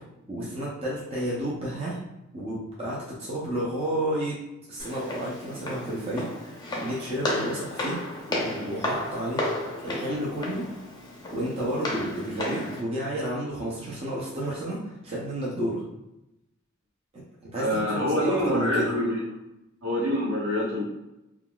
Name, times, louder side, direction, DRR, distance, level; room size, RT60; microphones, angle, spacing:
voice 1, 0.3-2.0 2.3-4.4 4.7-8.0 8.3-9.4 9.8-10.8 11.3-15.8 17.1-17.2 17.5-18.9, right 1 dB, 30° right, -6 dB, 0.6 m, -31 dB
Walk footsteps, 4.8-12.8, left 1 dB, 20° left, 0.5 m, -33 dB
voice 2, 17.6-19.2 19.8-20.8, left 1 dB, 70° right, -6 dB, 1.2 m, -26 dB
3.5 x 2.3 x 2.3 m, 0.92 s
head